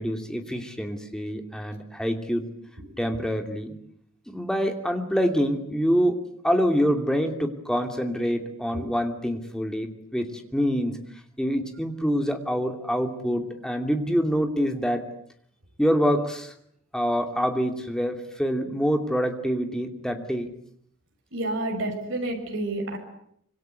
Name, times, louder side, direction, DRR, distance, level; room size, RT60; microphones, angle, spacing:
voice 1, 0.0-2.5 3.0-3.7 4.3-11.0 11.4-15.1 15.8-16.5 16.9-20.5, equal, 5° left, 5 dB, 2.7 m, -26 dB
voice 2, 21.3-23.0, right 1 dB, 65° right, 2 dB, 6.6 m, -30 dB
26.0 x 24.5 x 8.2 m, 0.70 s
head